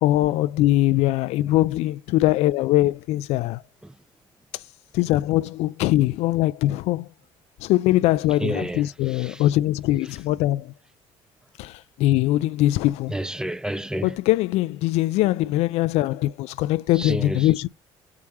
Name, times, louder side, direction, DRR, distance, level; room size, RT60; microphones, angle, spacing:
voice 1, 0.0-3.6 4.9-7.1 7.6-10.7 11.6-13.1 14.0-17.7, left 16 dB, 75° left, 0.4 m, -22 dB
voice 2, 8.4-9.5 13.1-14.2 16.9-17.5, right 1 dB, 5° right, 0.6 m, -30 dB
7.6 x 4.8 x 7.1 m
supercardioid pair, 85°, 11 cm